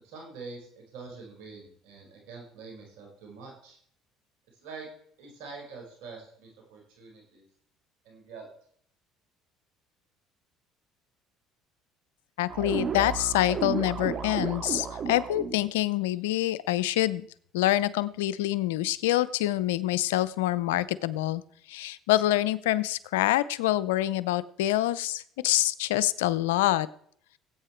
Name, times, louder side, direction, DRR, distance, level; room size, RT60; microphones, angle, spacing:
voice 1, 0.0-3.8 4.6-4.9 5.2-7.4 8.0-8.5, right 4 dB, 80° right, 0 dB, 5.1 m, -45 dB
voice 2, 12.4-17.3 17.5-21.4 21.7-26.9, left 15 dB, 90° left, 17 dB, 0.6 m, -26 dB
sound 1, 12.5-15.6, right 6 dB, 50° right, 2.3 m, -33 dB
17.5 x 8.6 x 4.5 m, 0.63 s
supercardioid pair, 75°, 0 cm